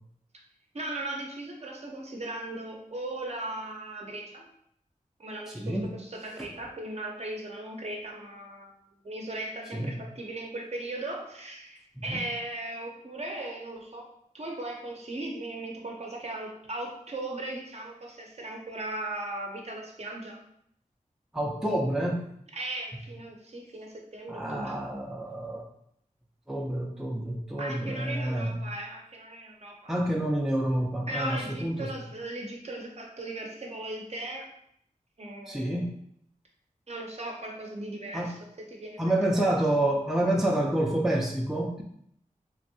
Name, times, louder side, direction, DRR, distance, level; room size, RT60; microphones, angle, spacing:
voice 1, 0.7-4.4 5.2-8.7 9.0-14.0 14.3-20.4 22.5-24.8 27.6-29.9 31.1-34.5 35.2-35.8 36.9-39.7, right 1 dB, 50° right, 0 dB, 0.7 m, -38 dB
voice 2, 5.5-5.9 6.4-6.5 9.7-9.9 12.0-12.2 21.3-22.2 24.3-25.6 26.5-28.6 29.9-31.9 35.5-35.9 38.1-38.3 39.0-41.8, right 1 dB, 5° right, -1 dB, 0.5 m, -28 dB
3.1 x 2.6 x 2.6 m, 0.70 s
wide cardioid pair, 75°, 14 cm